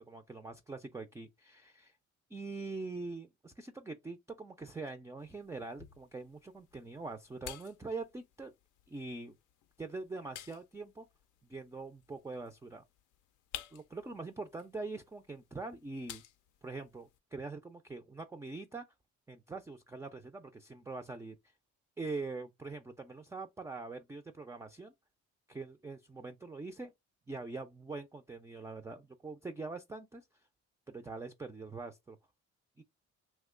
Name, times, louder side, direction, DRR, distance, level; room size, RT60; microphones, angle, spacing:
voice 1, 0.1-1.9 2.3-8.5 8.9-9.3 9.8-11.1 11.5-12.8 13.7-16.2 16.6-18.8 19.3-21.4 22.0-24.9 25.5-26.9 27.3-30.2 30.9-32.2 32.8-32.9, right 3 dB, 10° right, 0.3 m, -43 dB
sound 1, 5.2-17.2, left 11 dB, 80° left, 0.5 m, -53 dB
2.9 x 2.2 x 3.6 m
cardioid pair, 90°, 30 cm